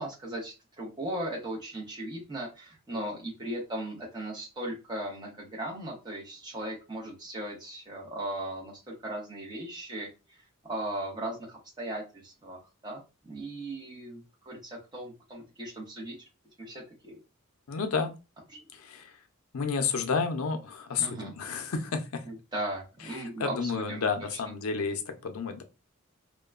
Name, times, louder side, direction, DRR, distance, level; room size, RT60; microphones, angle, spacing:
voice 1, 0.0-10.1 10.6-16.2 16.6-17.2 18.5-18.6 21.0-21.3 22.2-24.1, right 1 dB, 20° right, -3 dB, 0.9 m, -37 dB
voice 2, 17.7-18.1 18.7-19.1 19.5-22.2 23.1-25.6, left 5 dB, 90° left, 7 dB, 0.5 m, -31 dB
2.9 x 2.1 x 2.3 m, 0.29 s
head